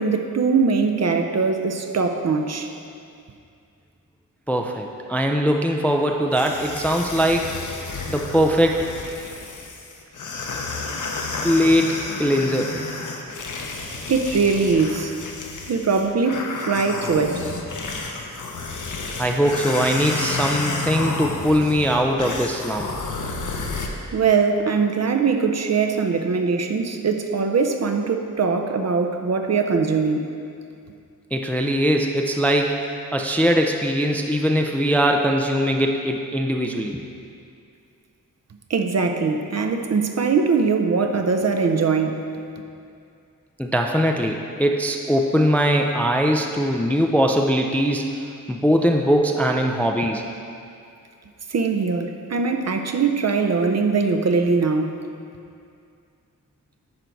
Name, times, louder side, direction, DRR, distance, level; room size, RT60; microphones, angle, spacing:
voice 1, 0.0-2.7 14.1-15.1 15.7-17.4 24.1-30.3 38.7-42.3 51.5-55.0, right 4 dB, 50° right, 5 dB, 0.5 m, -21 dB
voice 2, 4.5-7.5 8.1-8.8 11.4-12.7 19.2-22.9 31.3-32.8 33.1-37.0 43.6-48.1 48.5-50.2, equal, 5° left, 2 dB, 0.3 m, -21 dB
sound 1, 6.3-23.9, left 3 dB, 60° left, 0.8 m, -31 dB
11.0 x 3.9 x 4.5 m, 2.4 s
wide cardioid pair, 145°, 34 cm